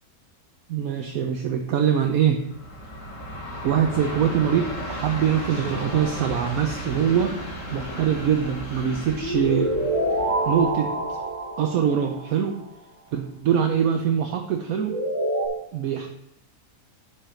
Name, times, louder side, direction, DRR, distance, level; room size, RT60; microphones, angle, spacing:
voice 1, 0.7-2.4 3.6-7.3 7.7-9.7 10.5-10.9 11.6-12.5 13.1-15.0 15.7-16.1, right 8 dB, 65° right, 4 dB, 1.1 m, -23 dB
Train, 2.4-11.6, equal, 50° left, 2.1 m, -35 dB
sound 1, 5.7-6.8 9.1-12.4 14.7-15.5, right 1 dB, 20° right, 1.7 m, -27 dB
10.5 x 4.9 x 4.4 m, 0.75 s
omnidirectional pair, 1.8 m